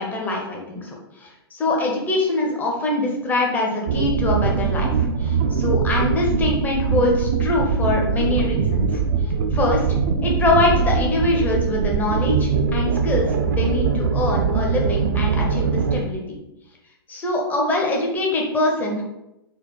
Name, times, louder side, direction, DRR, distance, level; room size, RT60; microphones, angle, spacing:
voice 1, 0.0-4.9 5.2-9.9 10.2-16.4 17.1-19.0, left 2 dB, 15° left, -1 dB, 0.7 m, -23 dB
sound 1, 3.9-16.0, right 6 dB, 55° right, 0.4 m, -22 dB
4.1 x 2.1 x 3.2 m, 0.91 s
figure-of-eight pair, 115°, 13 cm